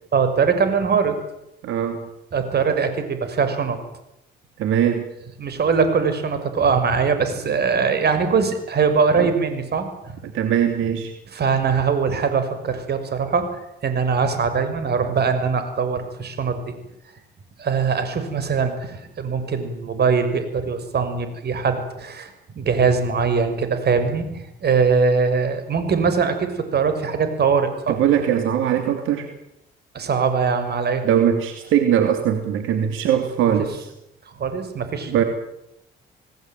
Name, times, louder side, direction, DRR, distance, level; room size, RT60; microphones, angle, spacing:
voice 1, 0.1-1.1 2.3-3.8 5.4-10.2 11.3-13.5 13.8-16.6 17.6-22.3 22.6-28.0 29.9-31.0 34.4-35.1, right 5 dB, 55° right, 9 dB, 6.0 m, -21 dB
voice 2, 1.6-2.1 4.6-5.1 9.1-9.3 10.2-11.1 27.9-29.3 31.0-33.9 35.1-35.2, right 9 dB, 90° right, 7 dB, 2.9 m, -21 dB
28.0 x 18.5 x 9.3 m, 0.84 s
cardioid pair, 90°, 20 cm